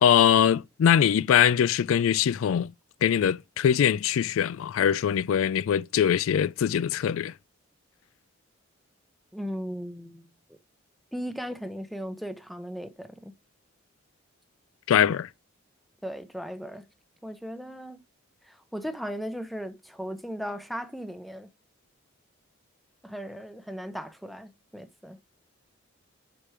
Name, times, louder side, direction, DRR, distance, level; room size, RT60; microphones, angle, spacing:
voice 1, 0.0-2.7 3.0-7.3 14.9-15.3, left 9 dB, 85° left, 0.3 m, -22 dB
voice 2, 9.3-10.3 11.1-13.3 16.0-16.8 17.2-18.0 18.5-21.5 23.0-25.2, equal, ahead, 0.7 m, -37 dB
6.6 x 5.9 x 4.8 m
head